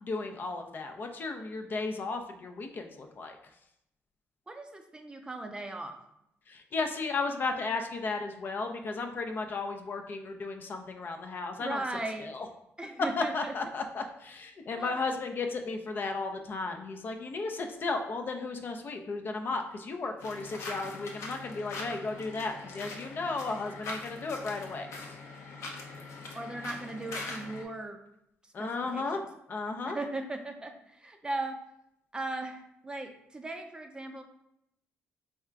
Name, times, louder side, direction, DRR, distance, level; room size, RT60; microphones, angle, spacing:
voice 1, 0.0-3.4 6.5-11.8 12.2-12.5 13.2-25.2 28.5-29.2 29.5-30.0, left 3 dB, 45° left, 4 dB, 0.5 m, -34 dB
voice 2, 4.5-6.0 11.6-12.3 12.8-13.5 14.8-15.0 26.3-28.0 28.4-29.1 29.9-31.6 32.1-34.2, right 2 dB, 20° right, 5 dB, 0.5 m, -38 dB
sound 1, 20.2-27.6, left 3 dB, 80° left, 0.7 m, -42 dB
3.5 x 2.4 x 4.4 m, 0.79 s
cardioid pair, 90°, 5 cm